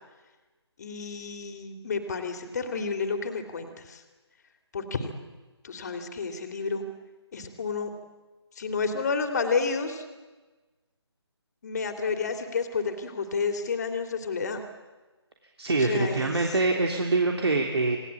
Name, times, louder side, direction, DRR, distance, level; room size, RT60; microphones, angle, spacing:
voice 1, 0.8-4.0 4.7-5.1 5.6-6.8 7.3-7.9 8.6-10.0 11.6-14.6 15.8-16.5, left 5 dB, 35° left, 7 dB, 2.9 m, -30 dB
voice 2, 15.6-18.0, right 3 dB, 65° right, 2 dB, 3.3 m, -24 dB
27.5 x 19.0 x 8.7 m, 1.3 s
figure-of-eight pair, 160°, 15 cm